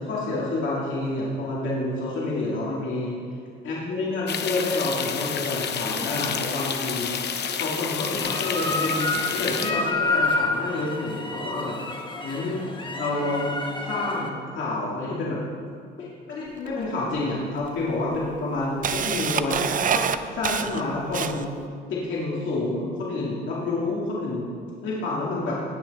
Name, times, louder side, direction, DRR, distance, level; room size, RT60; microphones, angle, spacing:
voice 1, 0.0-3.2 3.6-11.8 12.2-12.6 13.0-13.6 13.9-15.4 16.0-20.0 20.3-21.6 21.9-24.5 24.8-25.5, left 2 dB, 75° left, -6 dB, 2.3 m, -28 dB
sound 1, 4.3-9.7, left 7 dB, 60° left, 0.8 m, -29 dB
sound 2, 8.2-14.3, left 2 dB, 25° left, 1.3 m, -28 dB
Camera, 16.7-16.8 17.6-17.7 18.2-21.6, right 8 dB, 45° right, 0.5 m, -26 dB
18.5 x 6.2 x 4.2 m, 2.2 s
cardioid pair, 90°, 20 cm